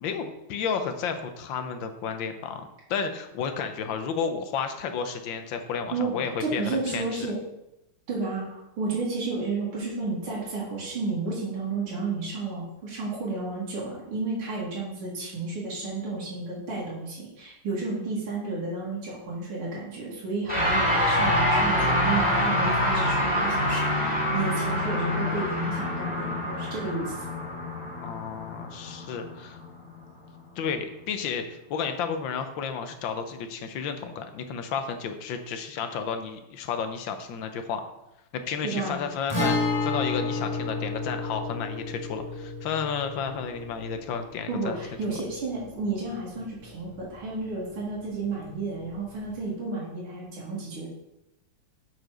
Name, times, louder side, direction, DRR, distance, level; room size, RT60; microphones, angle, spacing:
voice 1, 0.0-7.3 28.0-29.6 30.6-31.4 31.7-37.8 38.3-39.6 39.8-44.8, left 6 dB, 70° left, 7 dB, 1.4 m, -32 dB
voice 2, 5.9-7.4 8.1-27.2 38.6-39.1 44.5-50.9, right 3 dB, 80° right, -6 dB, 2.9 m, -32 dB
sound 1, 20.5-30.0, left 1 dB, 5° right, 2.0 m, -26 dB
Guitar, 39.3-46.9 47.2-47.3 49.3-49.4, left 3 dB, 10° left, 2.4 m, -31 dB
7.0 x 4.6 x 6.1 m, 0.89 s
omnidirectional pair, 2.3 m